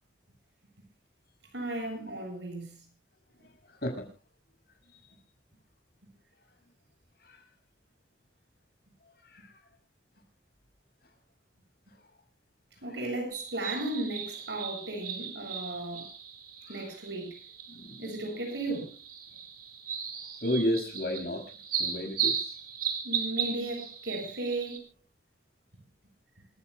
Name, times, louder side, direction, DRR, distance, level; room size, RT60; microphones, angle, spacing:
voice 1, 1.5-2.8 3.4-3.5 12.8-16.1 16.7-17.3 18.0-18.9 23.0-24.8, right 2 dB, 80° right, 7.8 m, -35 dB
sound 1, 13.3-24.8, right 7 dB, 55° right, 4.1 m, -37 dB
voice 2, 17.7-18.1 20.4-21.4 21.8-22.6, equal, 60° left, 6.0 m, -32 dB
27.5 x 16.0 x 2.2 m
head